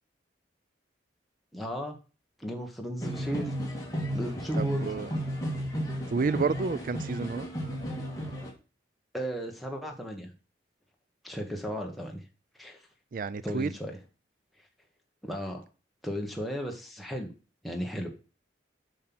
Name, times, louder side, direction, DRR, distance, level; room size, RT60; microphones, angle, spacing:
voice 1, 1.5-2.0 2.4-3.5 4.1-4.9 9.1-10.3 11.2-12.2 12.6-12.8 13.4-13.9 15.2-15.6 16.0-17.3 17.6-18.1, equal, ahead, 1.4 m, -35 dB
sound 1, 3.0-8.5, equal, 20° left, 2.4 m, -33 dB
voice 2, 4.6-5.1 6.1-7.5 13.1-13.8, right 4 dB, 45° right, 0.4 m, -30 dB
7.5 x 5.6 x 6.1 m
head